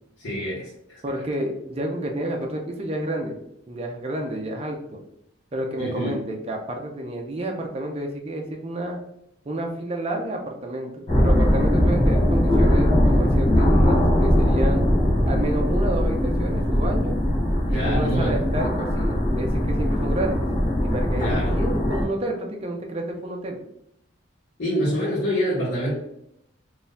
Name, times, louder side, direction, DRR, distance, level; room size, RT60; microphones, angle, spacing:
voice 1, 0.2-1.0 5.8-6.2 17.7-18.4 21.2-21.5 24.6-25.9, equal, 70° left, -9 dB, 1.2 m, -26 dB
voice 2, 1.0-3.4 3.7-5.0 5.5-9.0 9.5-14.8 15.3-17.2 17.7-20.5 20.8-23.6, right 1 dB, 30° right, 1 dB, 0.5 m, -30 dB
sound 1, 11.1-22.1, equal, 30° left, 0.9 m, -20 dB
3.8 x 2.6 x 2.6 m, 0.77 s
head